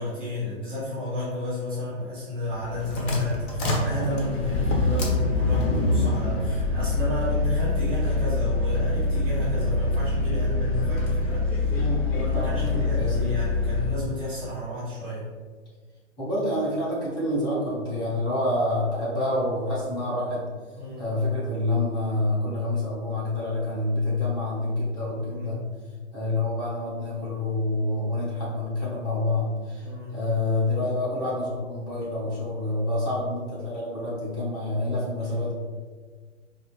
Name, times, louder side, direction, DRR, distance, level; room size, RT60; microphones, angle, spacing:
voice 1, 0.0-11.8 12.1-15.3 20.8-21.1 25.0-25.6 29.8-30.3 35.2-35.3, left 1 dB, 5° right, -18 dB, 0.3 m, -32 dB
sound 1, 2.5-14.0, left 2 dB, 55° left, 1.0 m, -25 dB
voice 2, 11.7-13.3 16.2-20.4 21.0-25.6 26.1-35.5, left 2 dB, 10° left, -8 dB, 1.0 m, -27 dB
4.8 x 2.0 x 3.1 m, 1.5 s
hypercardioid pair, 135°, 38 cm